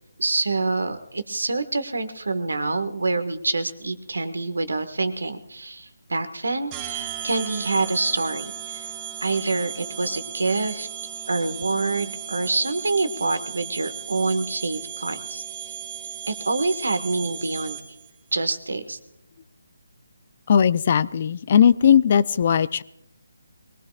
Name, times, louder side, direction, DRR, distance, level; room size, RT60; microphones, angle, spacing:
voice 1, 0.2-8.9 9.2-10.9 11.3-15.4 16.3-17.8 18.3-19.0, right 3 dB, 85° right, 9 dB, 1.6 m, -26 dB
sound 1, 6.7-18.1, right 10 dB, 20° right, 2.4 m, -36 dB
voice 2, 20.5-22.8, left 8 dB, 40° left, 18 dB, 0.5 m, -18 dB
23.0 x 19.0 x 2.5 m, 0.82 s
figure-of-eight pair, 160°, 0 cm